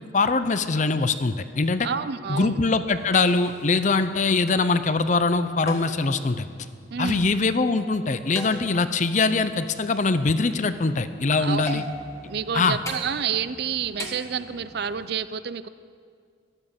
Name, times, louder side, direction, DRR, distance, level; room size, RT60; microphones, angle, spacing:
voice 1, 0.0-1.9 2.3-6.5 7.0-11.8 12.5-12.8, left 3 dB, 40° left, 12 dB, 0.6 m, -23 dB
voice 2, 1.8-2.6 6.9-7.3 11.4-11.8 12.3-15.7, right 7 dB, 55° right, 14 dB, 0.5 m, -29 dB
sound 1, 2.9-15.1, left 1 dB, 15° left, 1.5 m, -42 dB
13.5 x 12.0 x 7.3 m, 2.1 s
head